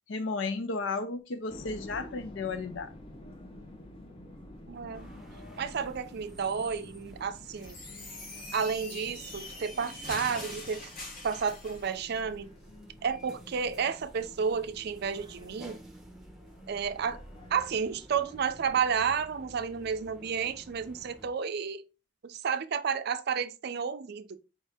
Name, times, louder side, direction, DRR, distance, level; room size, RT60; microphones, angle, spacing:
voice 1, 0.1-2.9, left 3 dB, 75° left, 0.5 m, -33 dB
sound 1, 1.5-19.2, left 1 dB, 30° left, 0.7 m, -50 dB
voice 2, 4.7-5.1 5.6-7.8 8.5-10.8 11.2-12.5 13.0-15.8 16.7-17.2 17.5-21.8 22.2-24.4, right 6 dB, 55° right, 0.4 m, -31 dB
sound 2, 4.9-21.3, right 1 dB, ahead, 0.8 m, -53 dB
sound 3, 7.5-12.0, left 2 dB, 45° left, 1.2 m, -43 dB
4.7 x 2.7 x 3.4 m
head